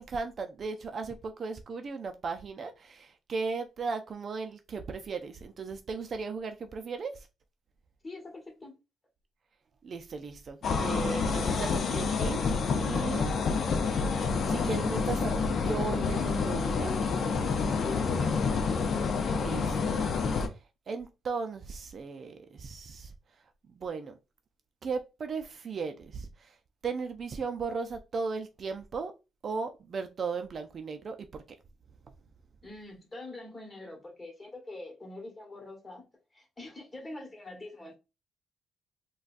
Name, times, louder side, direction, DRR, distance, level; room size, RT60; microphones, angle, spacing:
voice 1, 0.0-7.3 9.8-13.3 13.8-17.1 19.3-20.0 20.5-20.6 20.9-23.1 23.8-24.1 24.8-26.6 26.8-29.1 29.4-31.4, right 4 dB, 50° right, 0.4 m, -36 dB
voice 2, 8.0-8.7 17.8-18.6 32.6-36.0 36.3-38.0, left 2 dB, 20° left, 1.3 m, -44 dB
sound 1, 10.6-20.5, left 5 dB, 55° left, 0.5 m, -28 dB
3.8 x 2.3 x 2.5 m
cardioid pair, 90°, 0 cm